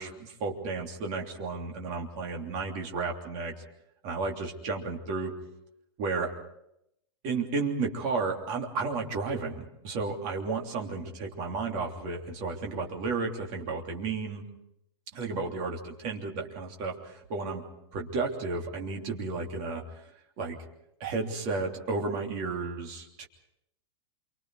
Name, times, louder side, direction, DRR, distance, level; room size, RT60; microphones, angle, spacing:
voice 1, 0.0-3.5 4.0-5.3 6.0-6.3 7.2-14.4 15.1-17.6 17.9-19.8 20.4-20.6 21.0-23.3, right 4 dB, 30° right, 1 dB, 3.2 m, -33 dB
28.0 x 24.5 x 4.8 m, 0.80 s
supercardioid pair, 175°, 15 cm